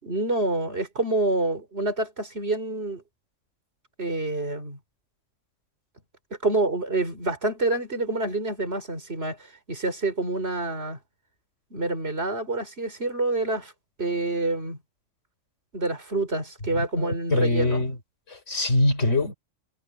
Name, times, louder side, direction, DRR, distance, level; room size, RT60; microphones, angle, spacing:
voice 1, 0.0-3.0 4.0-4.8 6.4-11.0 11.7-13.7 14.0-14.8 15.7-17.9, right 2 dB, 55° right, 4.6 m, -27 dB
voice 2, 16.8-17.9 18.3-19.3, left 2 dB, 75° left, 4.5 m, -24 dB
omnidirectional pair, 1.3 m